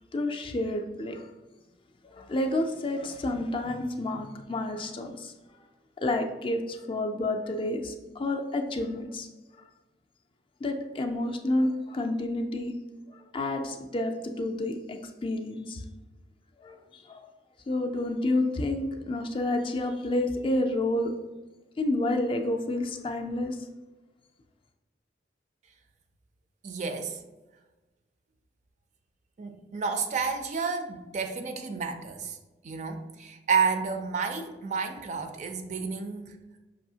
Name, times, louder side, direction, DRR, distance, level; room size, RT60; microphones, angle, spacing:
voice 1, 0.1-1.3 2.0-5.3 6.0-9.3 10.6-12.7 13.1-15.8 16.6-17.3 17.7-21.1 21.8-23.6, left 1 dB, 30° left, 4 dB, 0.3 m, -29 dB
voice 2, 26.6-27.2 29.4-32.4 32.6-36.4, right 5 dB, 40° right, 7 dB, 0.4 m, -30 dB
5.5 x 2.7 x 2.7 m, 1.1 s
head